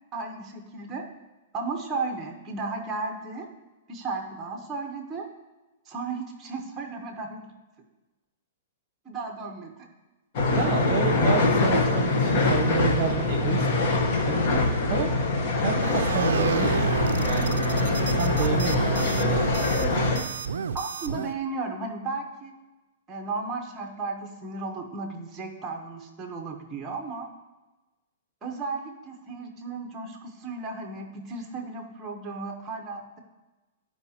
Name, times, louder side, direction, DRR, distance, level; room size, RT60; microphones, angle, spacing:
voice 1, 0.1-1.1 1.5-3.5 3.9-5.3 5.9-7.5 9.0-9.9 18.4-19.2 20.7-22.5 23.1-27.3 28.4-33.2, right 3 dB, 15° right, 2 dB, 0.8 m, -34 dB
sound 1, 10.3-20.2, left 3 dB, 50° left, 0.9 m, -24 dB
voice 2, 10.5-14.0 14.3-15.1 15.6-16.9 17.2-17.6 18.1-19.5, right 6 dB, 45° right, 4 dB, 0.8 m, -29 dB
sound 2, 15.8-21.3, right 6 dB, 85° right, 0.3 m, -31 dB
11.5 x 4.7 x 2.8 m, 1.1 s
hypercardioid pair, 150°, 0 cm